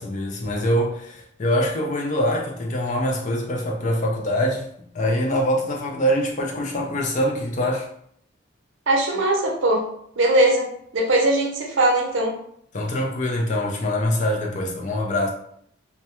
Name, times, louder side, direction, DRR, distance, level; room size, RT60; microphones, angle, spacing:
voice 1, 0.0-4.7 4.9-7.9 12.7-15.3, equal, 35° left, 0.4 m, -24 dB
voice 2, 8.9-9.9 10.2-12.4, right 1 dB, 65° right, 0.6 m, -20 dB
2.2 x 2.1 x 2.8 m
head